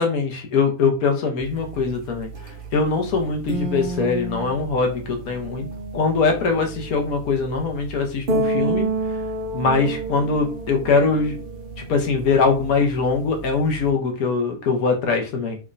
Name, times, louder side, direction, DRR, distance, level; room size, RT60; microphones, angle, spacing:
voice 1, 0.0-2.3 2.7-5.7 5.9-8.9 9.5-11.4 11.8-15.6, left 4 dB, 70° left, 3 dB, 1.2 m, -22 dB
sound 1, 1.4-13.9, right 2 dB, 70° right, 0.5 m, -30 dB
3.4 x 3.2 x 2.5 m, 0.34 s
omnidirectional pair, 1.6 m